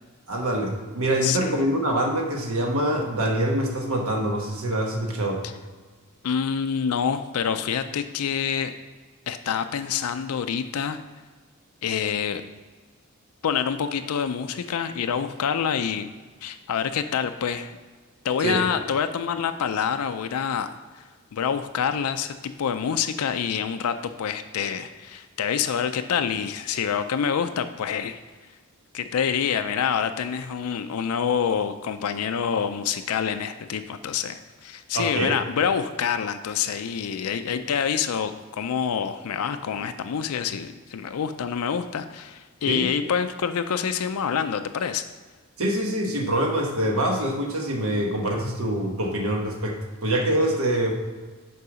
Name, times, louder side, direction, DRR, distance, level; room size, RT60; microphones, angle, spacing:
voice 1, 0.3-5.4 18.4-18.6 34.9-35.4 42.7-42.9 45.6-50.9, right 1 dB, 70° right, 1 dB, 1.1 m, -25 dB
voice 2, 1.2-1.6 6.2-8.7 9.3-11.0 11.8-12.4 13.4-16.1 16.4-17.7 18.2-20.7 20.9-21.0 21.3-28.2 28.9-45.0, left 7 dB, 75° left, 9 dB, 0.4 m, -27 dB
6.8 x 4.7 x 4.9 m, 1.4 s
head